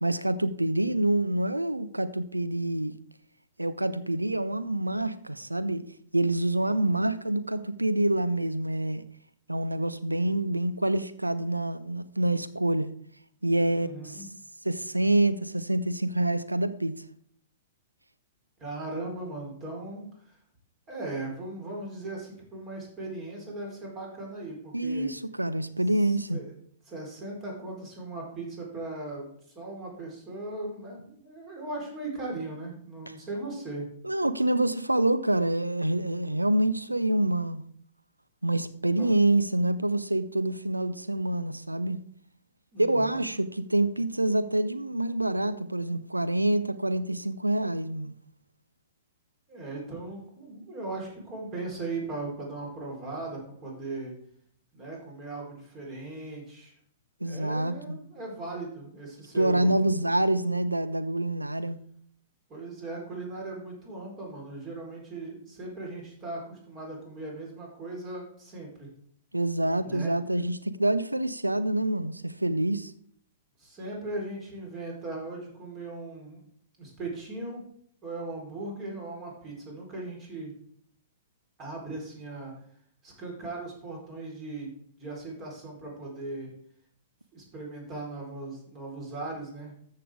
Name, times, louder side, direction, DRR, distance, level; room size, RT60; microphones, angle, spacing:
voice 1, 0.0-2.9 3.6-5.8 6.1-9.0 9.5-12.9 13.4-14.3 14.6-16.9 24.7-26.4 34.0-37.6 38.4-42.0 42.8-48.1 57.2-58.0 59.3-61.8 69.3-72.9, right 1 dB, 85° right, 0.7 m, -26 dB
voice 2, 13.6-14.3 18.6-20.3 20.9-25.1 26.0-26.5 26.8-33.9 39.0-39.1 42.7-43.3 49.5-54.1 54.7-56.7 57.2-59.7 62.5-68.9 69.8-70.1 73.6-76.4 76.8-77.7 78.0-80.5 81.6-82.5 83.0-86.5 87.3-89.7, right 2 dB, 25° right, 4.3 m, -38 dB
13.5 x 6.7 x 3.6 m
figure-of-eight pair, 110°, 0 cm